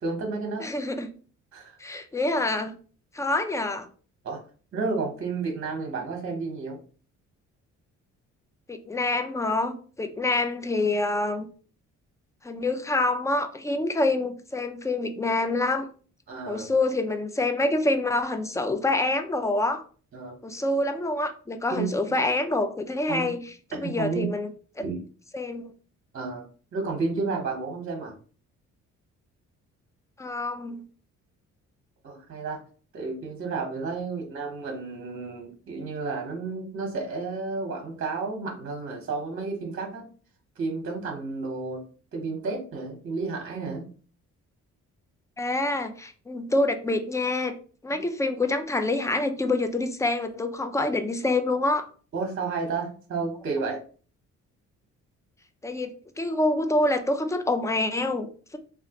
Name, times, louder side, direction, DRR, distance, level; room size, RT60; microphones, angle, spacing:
voice 1, 0.0-0.7 1.5-1.8 4.2-4.4 4.7-6.8 16.3-16.7 20.1-20.4 21.7-22.0 23.1-23.3 23.8-24.3 24.8-25.0 26.1-26.4 26.7-28.1 32.0-32.6 32.9-40.1 40.6-41.8 42.1-43.9 52.1-53.8, right 4 dB, 40° right, 1 dB, 0.9 m, -31 dB
voice 2, 0.6-1.1 1.8-2.7 3.1-3.9 8.7-11.5 12.4-15.9 16.5-19.8 20.4-23.4 23.7-24.5 24.8-24.9 25.3-25.7 30.2-30.8 45.4-47.6 47.8-51.9 55.6-58.6, left 2 dB, 10° left, 7 dB, 0.4 m, -26 dB
3.1 x 2.5 x 2.9 m, 0.41 s
cardioid pair, 90°, 30 cm